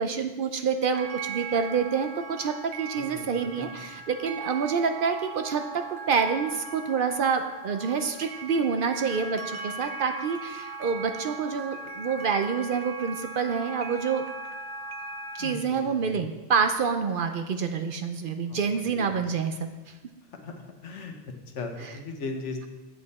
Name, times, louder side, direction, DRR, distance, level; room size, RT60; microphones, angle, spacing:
voice 1, 0.0-14.2 15.3-19.7, right 6 dB, 60° right, 7 dB, 0.6 m, -27 dB
sound 1, 0.9-15.5, right 4 dB, 85° right, 1.0 m, -39 dB
voice 2, 2.9-3.9 15.4-16.2 18.5-19.1 20.4-21.2 21.5-22.7, left 3 dB, 90° left, 4 dB, 1.4 m, -38 dB
8.6 x 7.3 x 4.1 m, 1.2 s
omnidirectional pair, 1.2 m